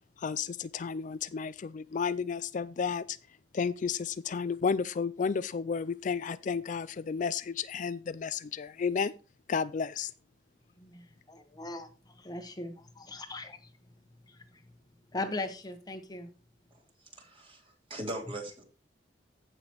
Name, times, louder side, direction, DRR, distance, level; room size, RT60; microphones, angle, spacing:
voice 1, 0.2-3.2 3.5-9.1 9.5-10.1, left 6 dB, 45° left, 0.4 m, -32 dB
voice 2, 10.8-13.7 14.3-14.6 15.1-16.3, left 2 dB, 25° left, 1.2 m, -39 dB
voice 3, 17.1-18.6, right 1 dB, 30° right, 3.0 m, -40 dB
15.5 x 5.9 x 3.0 m
head